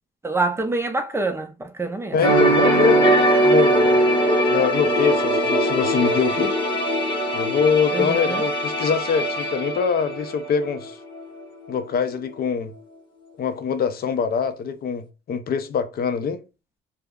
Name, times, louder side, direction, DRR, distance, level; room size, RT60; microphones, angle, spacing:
voice 1, 0.2-2.2 7.9-8.4, right 3 dB, 15° right, 0.4 m, -26 dB
voice 2, 2.1-3.2 3.4-4.0 4.5-6.5 7.3-11.0 11.7-12.7 13.4-16.4, left 6 dB, 50° left, 0.4 m, -24 dB
sound 1, 2.2-10.9 11.1-11.4, right 1 dB, 25° left, 0.8 m, -20 dB
2.2 x 2.0 x 3.4 m
cardioid pair, 90°, 20 cm